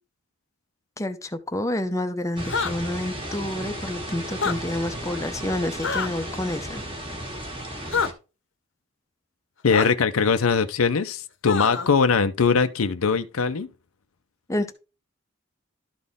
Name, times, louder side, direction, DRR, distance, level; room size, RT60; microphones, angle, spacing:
voice 1, 1.0-6.8 14.5-14.7, left 1 dB, 15° left, 0.6 m, -29 dB
sound 1, 2.4-2.7 4.3-4.6 5.8-6.1 7.9-8.1 9.7-9.9 11.5-11.9, left 5 dB, 60° left, 0.9 m, -25 dB
sound 2, 2.4-8.1, right 1 dB, 25° right, 1.5 m, -34 dB
voice 2, 9.6-13.7, left 5 dB, 85° left, 0.6 m, -21 dB
12.5 x 4.2 x 3.5 m
head